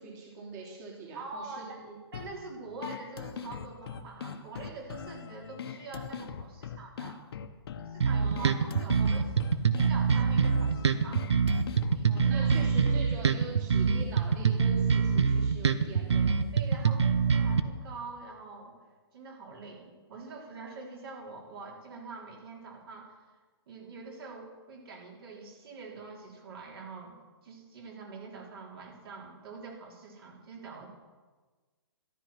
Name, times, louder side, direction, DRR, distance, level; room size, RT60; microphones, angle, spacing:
voice 1, 0.0-2.0 8.1-8.8 12.0-16.3, right 4 dB, 40° right, -2 dB, 3.2 m, -43 dB
voice 2, 1.2-1.9 2.1-7.2 7.9-9.3 9.7-11.2 11.9-12.6 16.5-18.7 19.1-23.2 23.7-27.2 27.4-30.9, right 3 dB, 60° right, -1 dB, 3.7 m, -45 dB
sound 1, 2.1-13.1, left 7 dB, 65° left, 1.0 m, -42 dB
sound 2, 8.0-17.6, right 6 dB, 85° right, 0.9 m, -25 dB
13.5 x 12.0 x 5.8 m, 1.3 s
hypercardioid pair, 145°, 14 cm